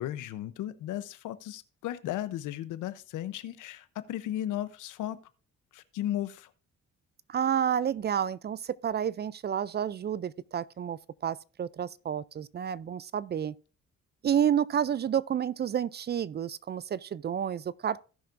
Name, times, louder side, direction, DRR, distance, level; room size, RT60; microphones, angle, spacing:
voice 1, 0.0-5.2 5.7-6.5, left 12 dB, 85° left, 0.8 m, -35 dB
voice 2, 7.3-13.5 14.2-18.0, right 9 dB, 35° right, 0.4 m, -30 dB
17.0 x 5.8 x 2.5 m
cardioid pair, 90°, 30 cm